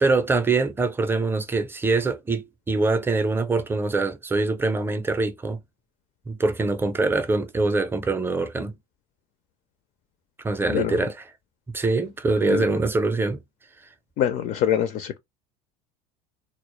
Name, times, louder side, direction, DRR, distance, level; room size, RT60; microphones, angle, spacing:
voice 1, 0.0-5.6 6.3-8.7 10.4-11.3 11.7-13.4, right 3 dB, 10° right, 0.5 m, -24 dB
voice 2, 14.2-15.2, left 10 dB, 50° left, 0.4 m, -24 dB
2.0 x 2.0 x 3.0 m
supercardioid pair, 95°, 18 cm